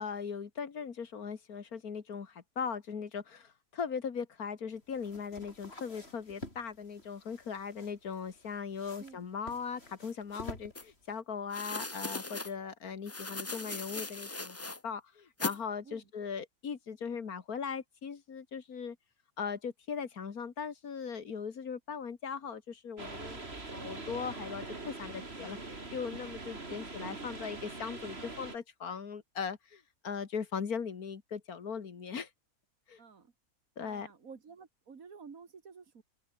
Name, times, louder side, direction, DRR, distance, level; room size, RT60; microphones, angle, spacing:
voice 1, 0.0-14.6 14.8-19.0 19.4-23.4 23.7-32.3 32.9-33.0 33.8-34.1, left 6 dB, 85° left, 2.3 m, -39 dB
sound 1, 4.7-11.2, left 1 dB, 45° left, 6.9 m, -50 dB
sound 2, 10.7-10.8 11.5-12.5 13.1-14.8 15.4-15.6, left 2 dB, 15° left, 0.6 m, -38 dB
sound 3, 23.0-28.6, right 2 dB, 45° right, 3.6 m, -43 dB
voice 2, 33.0-33.3 33.8-36.0, right 5 dB, 70° right, 2.4 m, -52 dB
omnidirectional pair, 1.5 m